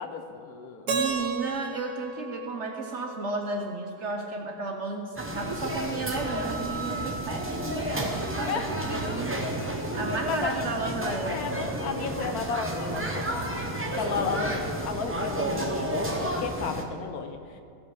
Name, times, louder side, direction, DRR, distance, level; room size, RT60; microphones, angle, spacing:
voice 1, 0.0-0.9 8.5-8.7 10.3-13.6 14.0-14.6 14.8-17.6, left 5 dB, 65° left, 6 dB, 1.1 m, -34 dB
voice 2, 0.9-9.3 9.9-11.8 13.9-14.3, right 3 dB, 55° right, 3 dB, 0.9 m, -33 dB
Keyboard (musical), 0.9-3.8, right 4 dB, 75° right, 1.8 m, -34 dB
sound 1, 5.2-16.8, right 1 dB, 10° right, 0.6 m, -31 dB
16.0 x 5.5 x 6.2 m, 2.4 s
omnidirectional pair, 1.8 m